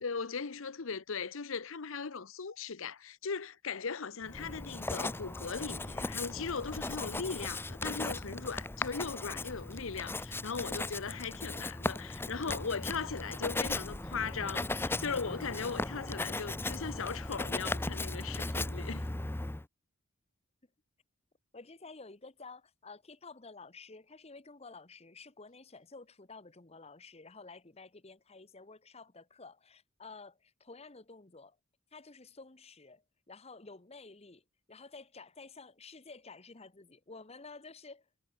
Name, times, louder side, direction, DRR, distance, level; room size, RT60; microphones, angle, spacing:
voice 1, 0.0-19.1, left 5 dB, 70° left, 0.8 m, -38 dB
Writing, 4.3-19.6, left 2 dB, 10° left, 0.6 m, -37 dB
voice 2, 21.5-31.6 31.9-34.4 34.7-38.0, left 3 dB, 30° left, 1.2 m, -51 dB
head